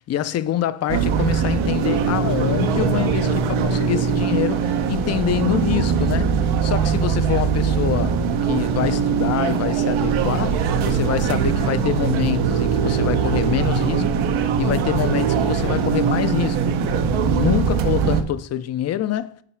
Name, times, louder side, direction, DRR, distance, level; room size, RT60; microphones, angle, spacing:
voice 1, 0.1-16.8 17.3-19.3, left 11 dB, 35° left, 0.4 m, -25 dB
sound 1, 0.9-18.2, right 6 dB, 80° right, 1.0 m, -21 dB
9.9 x 4.6 x 4.4 m
cardioid pair, 125°, 47 cm